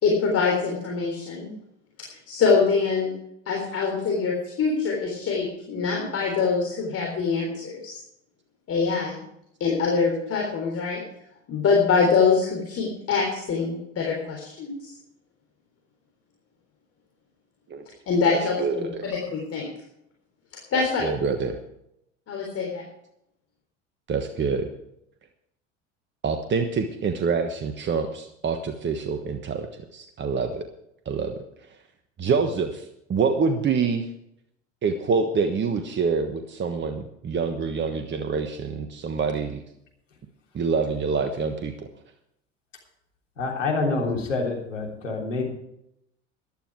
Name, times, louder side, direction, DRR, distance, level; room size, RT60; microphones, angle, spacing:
voice 1, 0.0-1.5 2.0-3.1 3.5-7.9 8.7-9.2 9.6-11.0 11.5-14.9 18.1-19.7 20.7-21.1 22.3-22.8, left 5 dB, 40° left, -1 dB, 3.8 m, -24 dB
voice 2, 18.3-19.1 20.7-21.6 24.1-24.7 26.2-30.6 31.0-31.4 32.2-32.8 33.1-34.1 34.8-39.6 40.5-41.9, right 5 dB, 30° right, 7 dB, 1.3 m, -26 dB
voice 3, 43.4-45.5, left 3 dB, 80° left, 0 dB, 3.4 m, -27 dB
14.5 x 11.5 x 4.8 m, 0.78 s
figure-of-eight pair, 70°, 37 cm